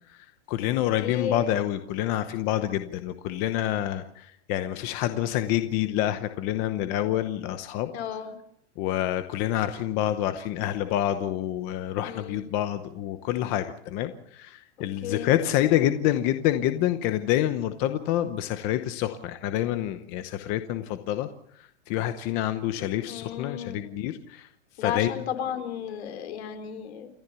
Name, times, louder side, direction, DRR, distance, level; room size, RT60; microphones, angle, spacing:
voice 1, 0.1-7.9 8.8-21.3 21.9-24.5 24.8-25.1, left 12 dB, 25° left, 9 dB, 0.8 m, -27 dB
voice 2, 1.0-1.5 7.9-8.4 12.0-12.5 15.0-15.3 23.1-23.8 24.8-27.1, left 8 dB, 65° left, 8 dB, 4.0 m, -33 dB
29.5 x 13.0 x 6.9 m, 0.69 s
supercardioid pair, 170°, 36 cm